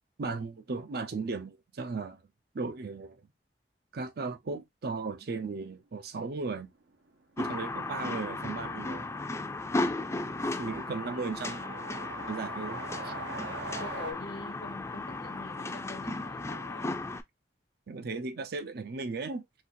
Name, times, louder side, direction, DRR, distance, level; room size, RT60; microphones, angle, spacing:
voice 1, 0.2-2.2 2.5-3.3 3.9-6.7 7.4-9.1 10.6-11.8 12.1-13.1 17.9-19.4, right 4 dB, 60° right, 0.6 m, -36 dB
sound 1, 6.6-6.7 6.9-7.0 7.3-14.1, right 3 dB, 85° right, 1.0 m, -44 dB
sound 2, 7.4-17.2, left 2 dB, 15° left, 0.4 m, -35 dB
voice 2, 10.0-10.3 13.6-17.0, left 3 dB, 65° left, 0.8 m, -45 dB
4.1 x 2.4 x 2.5 m
head